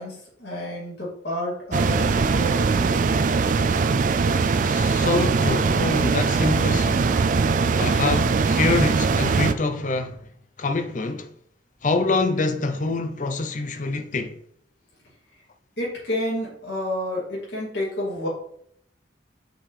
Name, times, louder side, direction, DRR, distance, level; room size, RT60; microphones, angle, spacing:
voice 1, 0.0-3.3 15.8-18.3, left 1 dB, 65° left, 2.6 m, -30 dB
sound 1, 1.7-9.5, right 4 dB, 45° right, 0.3 m, -21 dB
voice 2, 4.6-7.1 7.8-10.2 10.6-11.3 11.8-14.3, left 3 dB, 45° left, 0.6 m, -25 dB
6.1 x 4.9 x 3.3 m
head